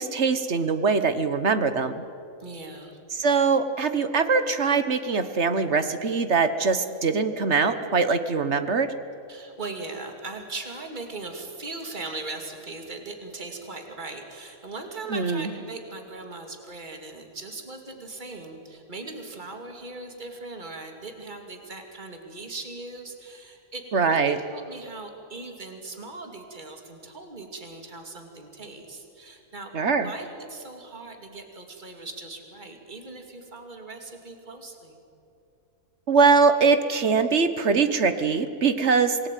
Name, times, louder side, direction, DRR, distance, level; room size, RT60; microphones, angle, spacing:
voice 1, 0.0-2.0 3.1-8.9 15.1-15.5 23.9-24.4 29.7-30.1 36.1-39.3, right 4 dB, 50° right, 10 dB, 1.5 m, -22 dB
voice 2, 2.4-3.0 9.3-29.7 30.0-35.0, right 3 dB, 30° right, 4 dB, 2.7 m, -39 dB
27.0 x 20.0 x 9.2 m, 2.6 s
omnidirectional pair, 1.6 m